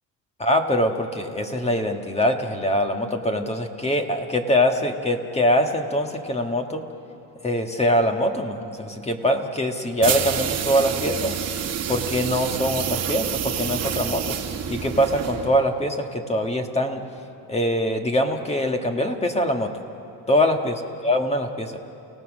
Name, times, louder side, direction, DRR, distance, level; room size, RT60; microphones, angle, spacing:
voice 1, 0.4-6.8 7.4-11.4 11.9-17.0 17.5-19.7 20.3-21.7, equal, 15° left, 5 dB, 1.6 m, -23 dB
sound 1, 10.0-15.6, right 8 dB, 40° right, 1.6 m, -28 dB
29.5 x 17.0 x 6.4 m, 2.9 s
cardioid pair, 110°, 38 cm